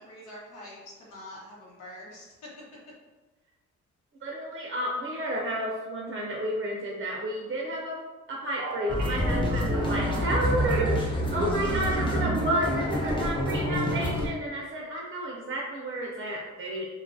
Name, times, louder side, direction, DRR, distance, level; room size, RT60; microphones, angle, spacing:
voice 1, 0.0-2.5, left 1 dB, 80° left, -5 dB, 1.1 m, -45 dB
voice 2, 4.2-8.0 8.3-16.9, right 1 dB, 40° right, -2 dB, 0.5 m, -31 dB
sound 1, 8.6-10.9 11.4-13.3 13.6-14.2, right 3 dB, 85° right, 0.6 m, -36 dB
sound 2, 8.9-14.3, equal, 15° left, 0.5 m, -28 dB
2.7 x 2.4 x 2.5 m, 1.2 s
cardioid pair, 90°, 30 cm